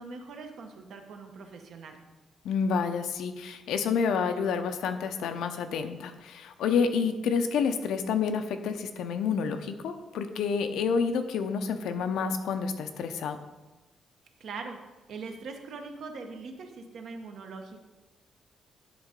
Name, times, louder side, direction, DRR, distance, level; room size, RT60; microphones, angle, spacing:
voice 1, 0.0-2.0 14.4-14.8 15.1-17.8, right 4 dB, 60° right, 4 dB, 1.0 m, -41 dB
voice 2, 2.4-13.4, left 6 dB, 90° left, 7 dB, 0.7 m, -29 dB
10.0 x 3.8 x 5.2 m, 1.1 s
cardioid pair, 155°, 0 cm